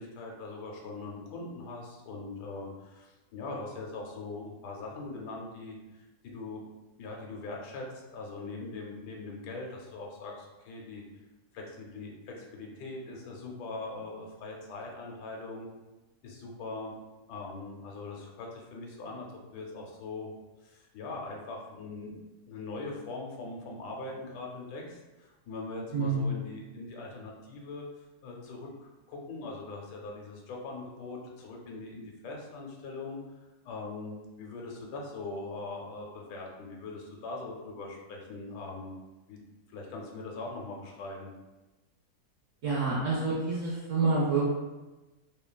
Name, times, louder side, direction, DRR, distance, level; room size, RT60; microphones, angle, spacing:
voice 1, 0.0-6.6 7.0-7.9 8.1-11.0 11.5-15.7 16.2-16.9 17.3-19.3 19.5-20.3 20.6-22.2 22.5-27.8 28.2-33.2 33.6-38.9 39.3-39.4 39.7-41.3, left 3 dB, 85° left, -1 dB, 1.2 m, -41 dB
voice 2, 25.9-26.3 42.6-44.4, right 4 dB, 65° right, -6 dB, 0.8 m, -28 dB
3.0 x 2.2 x 2.2 m, 1.1 s
omnidirectional pair, 1.7 m